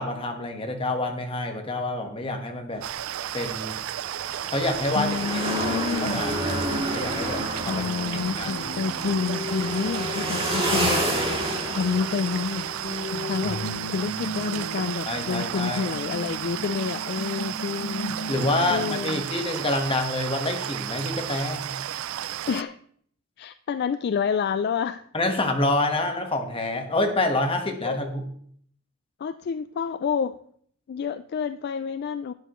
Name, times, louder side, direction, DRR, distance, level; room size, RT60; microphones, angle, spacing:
voice 1, 0.0-2.8 3.3-3.8 4.5-5.2 5.7-7.9 8.4-8.5 15.1-15.9 18.3-21.7 25.1-28.2, left 2 dB, 25° left, 3 dB, 1.4 m, -27 dB
sound 1, 2.7-13.8 14.0-14.1 16.1-16.4, right 1 dB, 30° right, 2.8 m, -31 dB
sound 2, 2.8-22.6, right 12 dB, 80° right, 0.3 m, -33 dB
voice 2, 4.9-6.2 7.7-11.0 11.7-12.7 13.0-13.6 13.9-18.1 18.7-19.2 22.5-22.8 23.4-25.1 27.8-28.0 29.2-30.4 30.9-32.3, left 6 dB, 50° left, 12 dB, 0.3 m, -28 dB
Upcoming Situation Guitar Background, 5.2-19.2, left 1 dB, 65° left, 0.9 m, -36 dB
12.0 x 9.0 x 3.1 m, 0.62 s
head